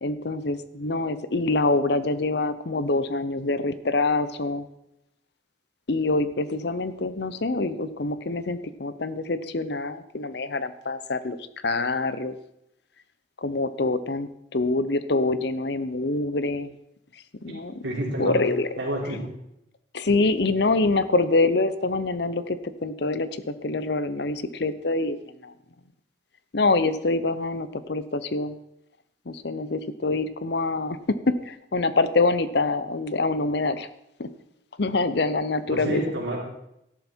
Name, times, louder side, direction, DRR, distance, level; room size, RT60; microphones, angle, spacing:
voice 1, 0.0-4.7 5.9-11.4 11.6-12.3 13.4-16.7 17.4-17.7 18.2-18.7 19.9-25.2 25.4-25.5 26.5-28.6 29.3-33.9 34.2-34.3 34.8-36.0, left 3 dB, 55° left, 13 dB, 0.7 m, -25 dB
voice 2, 17.8-18.3 18.8-19.2 35.7-36.4, right 1 dB, 65° right, -4 dB, 3.6 m, -29 dB
13.0 x 11.5 x 4.5 m, 0.81 s
head